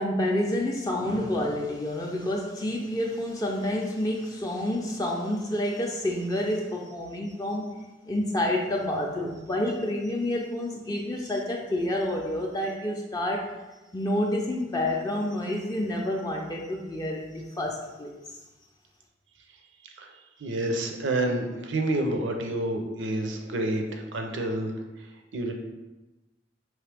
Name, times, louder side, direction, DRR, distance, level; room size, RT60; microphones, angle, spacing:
voice 1, 0.0-7.6 8.1-13.5 13.9-18.4, left 1 dB, 20° left, -1 dB, 0.4 m, -29 dB
voice 2, 20.4-24.7 25.0-25.5, right 1 dB, 70° right, 3 dB, 0.6 m, -29 dB
4.8 x 3.2 x 3.4 m, 1.1 s
head